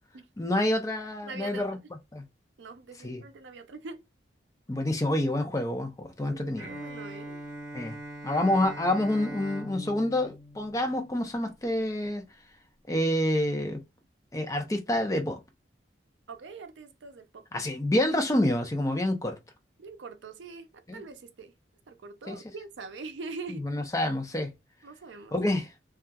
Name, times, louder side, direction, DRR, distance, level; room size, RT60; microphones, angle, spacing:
voice 1, 0.4-1.8 2.1-2.3 3.0-3.2 4.7-6.7 7.7-8.0 8.2-12.2 12.9-13.8 14.3-15.4 17.5-19.4 20.9-21.0 22.3-22.4 23.5-24.5 25.3-25.7, left 1 dB, 20° left, 0.4 m, -28 dB
voice 2, 1.2-1.6 2.6-4.0 6.3-7.4 16.3-17.4 19.8-21.5 21.9-23.6 24.8-25.4, right 4 dB, 90° right, 0.5 m, -43 dB
Bowed string instrument, 6.6-11.5, right 1 dB, 45° right, 0.9 m, -41 dB
2.8 x 2.3 x 2.2 m
head